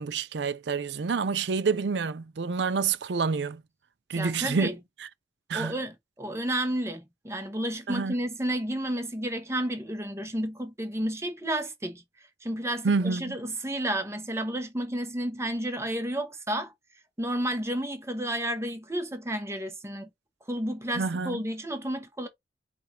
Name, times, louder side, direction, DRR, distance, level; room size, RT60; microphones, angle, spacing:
voice 1, 0.0-3.6 4.1-4.7 5.5-5.8 7.9-8.1 12.8-13.4 21.0-21.4, right 5 dB, 70° right, 0.5 m, -28 dB
voice 2, 4.1-4.7 5.5-12.0 12.4-16.7 17.2-20.1 20.5-22.3, right 1 dB, 15° right, 1.0 m, -31 dB
4.9 x 2.5 x 4.4 m
head